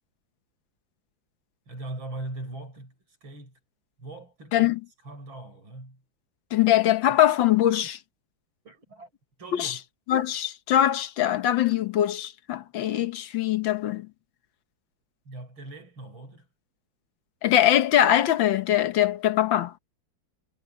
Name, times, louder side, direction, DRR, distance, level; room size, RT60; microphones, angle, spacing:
voice 1, 1.7-2.9 3.2-3.5 4.0-4.8 5.0-6.0 7.0-7.1 8.6-9.1 9.4-9.8 15.3-16.5, right 2 dB, 80° right, 7.7 m, -40 dB
voice 2, 6.5-8.0 9.5-9.7 10.1-14.1 17.4-19.7, left 12 dB, 70° left, 1.7 m, -22 dB
omnidirectional pair, 2.2 m